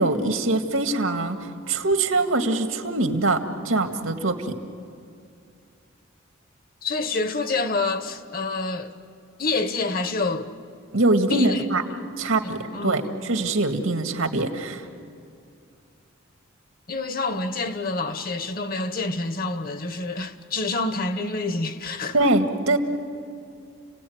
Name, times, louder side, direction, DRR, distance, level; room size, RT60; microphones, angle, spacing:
voice 1, 0.0-1.4 1.7-4.6 10.9-11.8 12.2-14.9 22.1-22.8, right 2 dB, 85° right, 1.9 m, -23 dB
voice 2, 6.8-8.9 9.4-10.5 11.3-11.6 12.4-13.2 16.9-22.1, left 3 dB, 45° left, 1.2 m, -27 dB
29.5 x 17.5 x 9.4 m
head